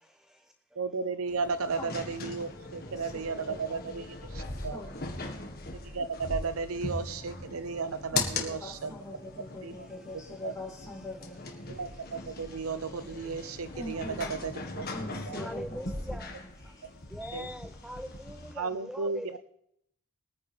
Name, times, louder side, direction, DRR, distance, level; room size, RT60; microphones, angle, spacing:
voice 1, 0.8-4.8 5.8-8.9 9.6-9.9 10.4-10.5 11.7-14.9 15.3-15.4 17.3-17.5 18.6-19.4, right 4 dB, 70° right, 13 dB, 0.7 m, -34 dB
sound 1, 1.3-18.5, left 3 dB, 45° left, 1.7 m, -40 dB
voice 2, 1.8-2.1 2.8-4.1 4.5-5.4 8.1-11.5 12.3-12.7 13.4-14.4 14.9-16.9, left 2 dB, 15° left, -4 dB, 4.3 m, -44 dB
voice 3, 13.9-14.2 15.4-16.3 17.1-19.4, equal, ahead, 9 dB, 0.4 m, -42 dB
22.5 x 9.5 x 3.5 m, 0.73 s
head